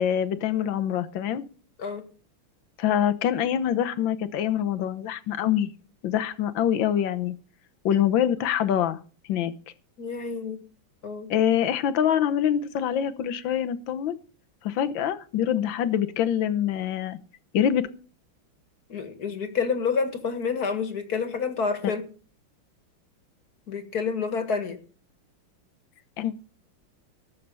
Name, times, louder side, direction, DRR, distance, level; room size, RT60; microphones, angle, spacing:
voice 1, 0.0-1.5 2.8-5.7 6.0-7.3 7.8-9.0 9.3-9.5 11.3-14.2 14.6-17.2 17.5-17.9 21.8-21.9 26.2-26.3, left 9 dB, 65° left, 1.5 m, -25 dB
voice 2, 10.0-10.6 11.0-11.3 18.9-22.0 23.7-24.8, left 5 dB, 45° left, 2.0 m, -28 dB
19.5 x 6.7 x 5.5 m
omnidirectional pair, 2.4 m